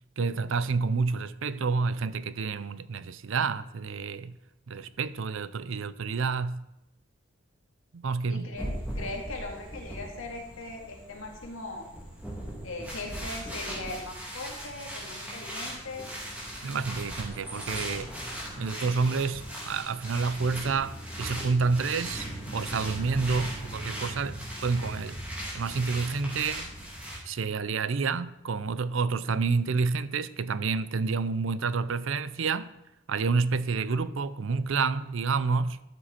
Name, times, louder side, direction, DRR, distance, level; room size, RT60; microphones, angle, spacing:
voice 1, 0.2-4.4 4.7-6.7 7.9-8.5 16.6-18.1 18.6-22.3 22.5-25.2 25.5-26.7 27.3-32.7 33.1-35.8, right 4 dB, 70° right, 0.5 m, -29 dB
voice 2, 8.3-11.9 12.6-16.1, left 2 dB, 80° left, 2.2 m, -39 dB
sound 1, 8.5-27.2, equal, 5° right, 2.7 m, -38 dB
12.5 x 7.6 x 4.4 m
head